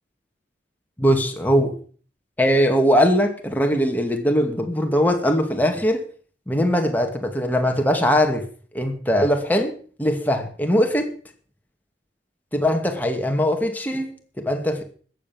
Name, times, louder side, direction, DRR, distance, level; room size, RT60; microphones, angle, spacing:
voice 1, 1.0-1.7 2.4-6.1 6.5-8.4 8.7-11.1 12.5-14.8, equal, 10° left, 2.4 m, -21 dB
14.0 x 9.5 x 7.2 m
head